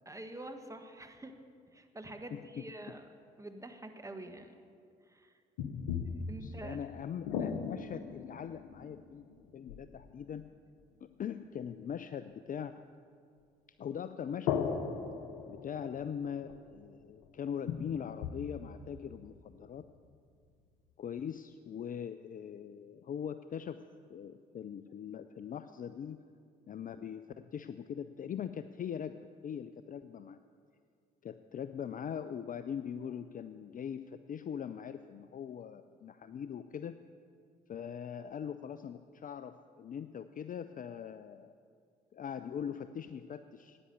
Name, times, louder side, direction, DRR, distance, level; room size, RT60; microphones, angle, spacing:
voice 1, 0.0-1.3 1.7-3.1 3.4-4.6 5.0-5.3 6.0-6.9, right 1 dB, 15° right, 6 dB, 1.5 m, -47 dB
voice 2, 2.3-2.6 6.4-9.2 9.5-10.5 11.0-12.8 13.8-14.8 15.5-19.8 21.0-23.8 24.1-26.2 26.7-30.4 31.2-37.0 37.7-41.5 42.1-43.8, left 8 dB, 40° left, 11 dB, 0.5 m, -41 dB
sound 1, 5.6-10.3 14.5-16.8 17.2-17.3 17.7-20.0, left 6 dB, 80° left, 0.8 m, -39 dB
10.5 x 9.7 x 8.1 m, 2.3 s
hypercardioid pair, 50°, 21 cm